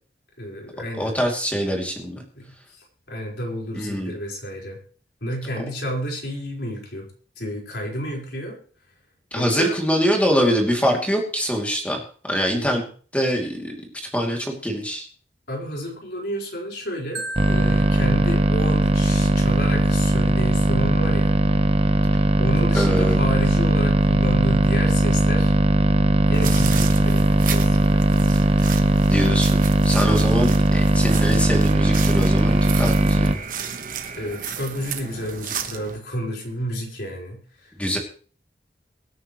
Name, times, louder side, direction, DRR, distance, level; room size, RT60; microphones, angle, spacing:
voice 1, 0.4-1.2 2.3-4.8 5.2-7.1 7.4-8.6 9.3-9.7 12.5-12.9 15.5-21.4 22.4-25.5 26.3-28.0 30.0-30.2 34.2-37.7, equal, 70° left, -1 dB, 4.7 m, -30 dB
voice 2, 1.0-2.2 3.7-4.1 9.3-12.0 12.3-12.8 13.1-13.7 14.1-15.1 22.7-23.2 29.1-33.3 37.8-38.0, equal, 10° left, 1 dB, 2.7 m, -24 dB
Marimba xylophone, 17.1-19.2, right 1 dB, 70° right, 1.9 m, -36 dB
sound 1, 17.4-33.3, right 1 dB, 35° right, 0.8 m, -19 dB
sound 2, 26.3-36.0, right 7 dB, 50° right, 1.3 m, -33 dB
24.0 x 9.5 x 3.2 m, 0.42 s
head